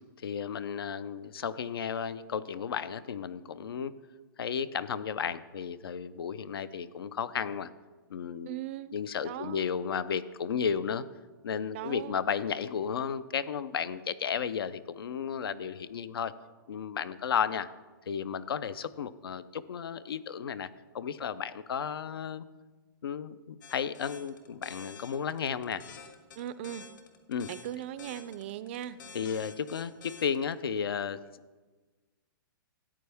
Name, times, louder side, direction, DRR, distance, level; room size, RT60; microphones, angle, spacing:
voice 1, 0.2-3.9 4.4-7.7 8.1-8.6 8.9-11.0 11.4-16.3 16.7-17.7 18.1-20.7 20.9-22.4 23.0-25.8 27.3-27.5 29.1-31.2, left 7 dB, 90° left, 16 dB, 0.6 m, -33 dB
voice 2, 8.5-8.9 9.2-9.6 11.7-12.2 26.4-26.8 27.5-29.0, right 12 dB, 30° right, 15 dB, 0.3 m, -38 dB
sound 1, 23.6-30.5, left 5 dB, 55° left, 1.5 m, -48 dB
14.0 x 8.7 x 3.5 m, 1.3 s
hypercardioid pair, 160°, 12 cm